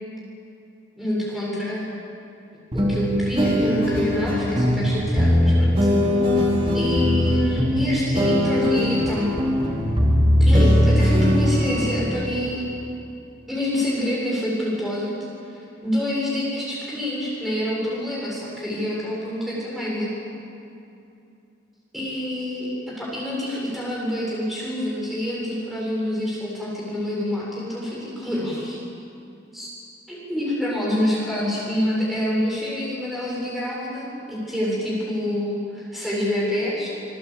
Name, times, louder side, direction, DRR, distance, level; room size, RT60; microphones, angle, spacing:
voice 1, 1.0-1.9 2.7-5.8 6.7-9.4 10.4-12.6 13.5-15.1 15.5-15.6 15.8-20.1 21.9-28.8 29.5-29.7 30.1-36.9, left 1 dB, ahead, -6 dB, 7.4 m, -27 dB
sound 1, 2.7-12.2, equal, 30° right, 3.0 m, -20 dB
27.0 x 22.0 x 8.8 m, 2.7 s
head